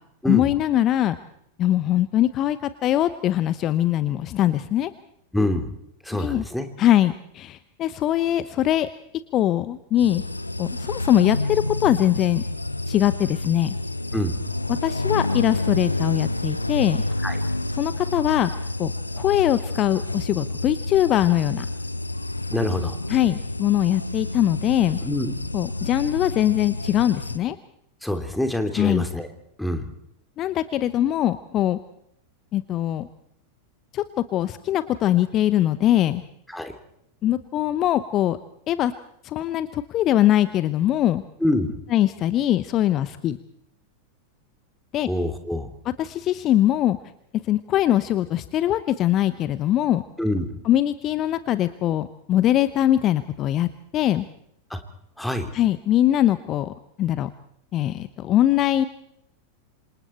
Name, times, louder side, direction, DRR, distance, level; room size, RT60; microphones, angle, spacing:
voice 1, 0.2-1.2 1.6-4.9 6.1-6.4 6.8-8.9 9.3-10.2 10.6-12.4 12.9-13.8 14.7-17.0 17.8-18.5 18.8-21.7 23.1-25.0 25.5-27.6 28.8-29.0 30.4-31.8 32.5-33.1 33.9-34.0 34.3-36.2 37.2-38.4 38.7-38.9 39.2-41.2 41.9-43.4 44.9-45.1 46.0-47.0 47.4-50.0 50.6-54.2 55.5-57.3 57.7-58.8, left 12 dB, 35° left, 14 dB, 0.9 m, -22 dB
voice 2, 5.3-5.7 6.0-6.7 14.1-14.4 17.2-17.4 22.5-23.0 25.0-25.3 28.0-29.3 29.6-29.9 36.5-36.7 41.4-41.7 45.0-45.7 50.2-50.5 54.7-54.8 55.2-55.5, left 1 dB, 5° left, 6 dB, 2.8 m, -25 dB
sound 1, 10.0-27.4, left 2 dB, 85° left, 0.9 m, -29 dB
27.0 x 26.5 x 4.4 m, 0.76 s
figure-of-eight pair, 90°, 0 cm